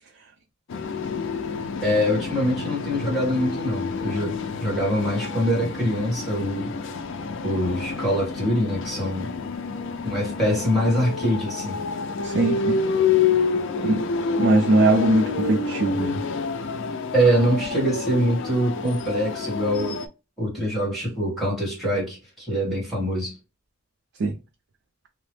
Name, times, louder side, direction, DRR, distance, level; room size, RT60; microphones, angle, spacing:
sound 1, 0.7-20.1, left 5 dB, 60° left, 0.4 m, -28 dB
voice 1, 1.8-6.7 7.4-9.3 10.0-11.8 17.1-20.0 20.4-23.3, equal, ahead, 1.5 m, -24 dB
voice 2, 12.2-12.8 13.8-14.1 14.4-16.2 24.2-24.4, right 2 dB, 55° right, 0.4 m, -21 dB
2.9 x 2.0 x 3.1 m
head